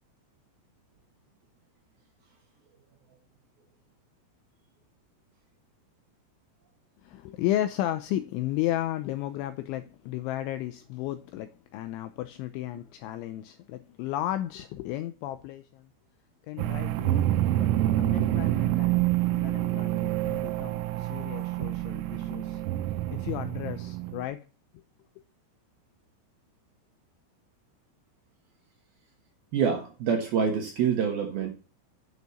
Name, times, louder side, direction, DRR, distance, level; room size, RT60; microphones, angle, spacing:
voice 1, 7.0-15.9 16.5-17.2 17.5-17.7 18.0-22.6 23.1-24.4 24.7-24.8, left 13 dB, 85° left, 2.7 m, -34 dB
sound 1, 16.6-24.2, right 14 dB, 85° right, 3.5 m, -27 dB
voice 2, 29.5-31.5, right 7 dB, 65° right, 2.6 m, -26 dB
8.2 x 7.1 x 8.2 m
omnidirectional pair, 6.0 m